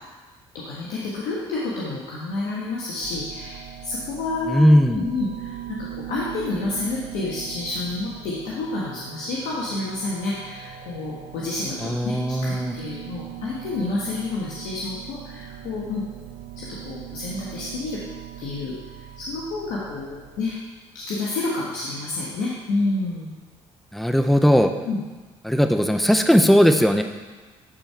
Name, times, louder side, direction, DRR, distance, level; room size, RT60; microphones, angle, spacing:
voice 1, 0.5-12.1 12.4-16.0 16.6-18.0 18.4-18.8 19.2-20.5 20.9-23.3 24.8-25.0, left 2 dB, 80° left, -6 dB, 1.4 m, -29 dB
sound 1, 3.0-20.6, right 12 dB, 75° right, 0.7 m, -40 dB
voice 2, 4.5-5.1 11.8-12.7 23.9-24.7 25.4-27.0, equal, ahead, 6 dB, 0.7 m, -18 dB
10.5 x 4.5 x 4.6 m, 1.3 s
supercardioid pair, 70°, 13 cm